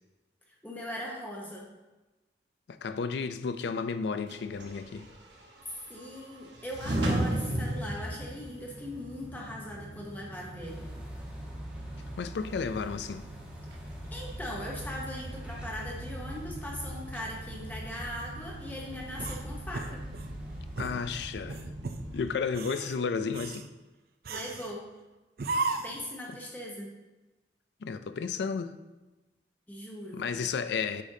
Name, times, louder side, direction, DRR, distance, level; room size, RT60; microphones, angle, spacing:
voice 1, 0.6-1.7 5.7-10.9 14.1-20.0 24.3-24.9 25.8-26.9 29.7-30.3, left 1 dB, 10° left, 0.8 m, -40 dB
voice 2, 2.7-5.1 12.2-13.2 20.8-21.6 22.1-23.7 25.7-25.8 27.8-28.7 30.1-31.0, left 5 dB, 75° left, 0.4 m, -32 dB
sound 1, 4.3-22.2, right 1 dB, 85° right, 1.1 m, -38 dB
sound 2, 10.6-21.1, equal, 5° right, 1.2 m, -46 dB
sound 3, 19.2-20.3 20.8-21.0 21.5-22.0 22.5-23.0 23.3-23.7 24.2-24.7 25.4-26.0, right 3 dB, 55° right, 0.4 m, -35 dB
8.5 x 5.1 x 2.7 m
head